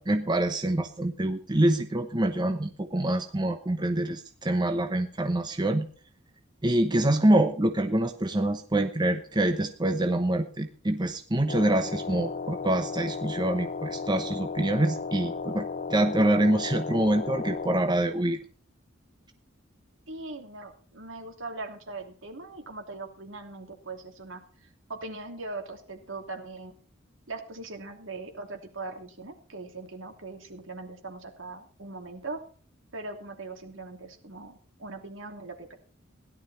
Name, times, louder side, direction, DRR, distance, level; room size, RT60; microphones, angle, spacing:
voice 1, 0.0-5.9 6.6-18.4, right 1 dB, 20° right, 7 dB, 0.9 m, -26 dB
sound 1, 11.5-17.8, left 4 dB, 45° left, 1.1 m, -34 dB
voice 2, 20.1-24.4 24.9-26.7 27.3-32.4 32.9-35.8, right 3 dB, 65° right, 4 dB, 2.9 m, -40 dB
17.0 x 11.5 x 4.2 m, 0.42 s
head